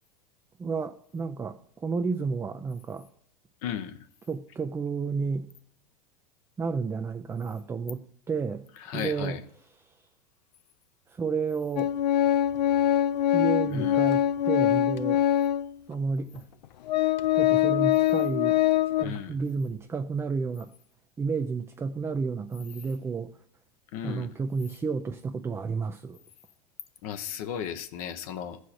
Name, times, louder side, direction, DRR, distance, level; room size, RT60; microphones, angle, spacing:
voice 1, 0.6-3.1 4.3-5.5 6.6-8.7 8.9-9.4 9.9-10.0 11.1-11.9 13.3-15.2 15.9-16.5 17.3-18.6 19.0-20.7 21.2-23.3 24.0-26.2, right 5 dB, 10° right, 0.4 m, -31 dB
voice 2, 3.6-4.0 8.8-9.4 13.7-14.0 19.0-19.4 23.9-24.3 27.0-28.6, left 9 dB, 60° left, 0.9 m, -35 dB
Organ, 11.8-15.7 16.4-16.5 16.9-19.0, left 11 dB, 90° left, 0.5 m, -23 dB
14.0 x 4.8 x 4.3 m
hypercardioid pair, 115°, 21 cm